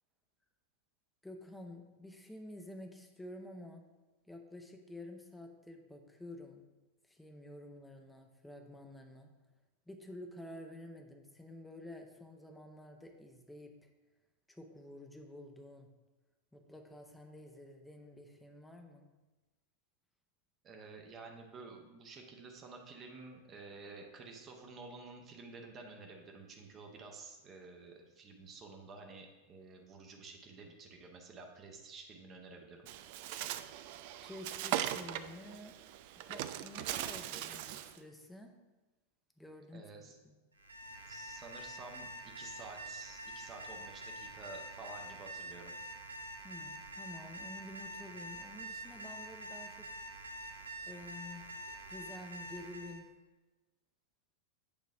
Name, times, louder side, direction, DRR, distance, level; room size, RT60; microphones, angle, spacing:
voice 1, 1.2-3.9 4.3-6.7 7.1-9.3 9.9-13.9 14.5-15.9 16.5-19.1 34.2-35.8 36.3-38.5 39.4-40.3 46.4-49.9 50.9-51.4 51.9-53.1, left 1 dB, 5° left, 3 dB, 0.8 m, -50 dB
voice 2, 20.6-32.9 39.7-40.2 41.1-45.7, right 3 dB, 25° right, 2 dB, 0.9 m, -51 dB
Bird, 32.9-38.0, right 12 dB, 50° right, 0.3 m, -40 dB
Alarm, 40.6-53.0, right 1 dB, 75° right, 0.6 m, -46 dB
8.7 x 3.0 x 5.4 m, 1.1 s
figure-of-eight pair, 90°, 0 cm